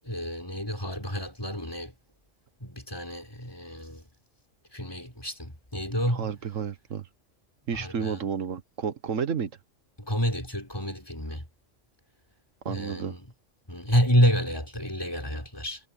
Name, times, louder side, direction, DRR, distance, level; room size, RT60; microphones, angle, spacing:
voice 1, 0.0-1.9 2.6-4.0 4.7-6.3 7.7-8.2 10.0-11.4 12.7-13.3 13.7-15.8, equal, 20° left, 5.0 m, -29 dB
voice 2, 6.1-7.0 7.7-9.5 12.6-13.2, right 7 dB, 80° right, 1.6 m, -31 dB
omnidirectional pair, 1.3 m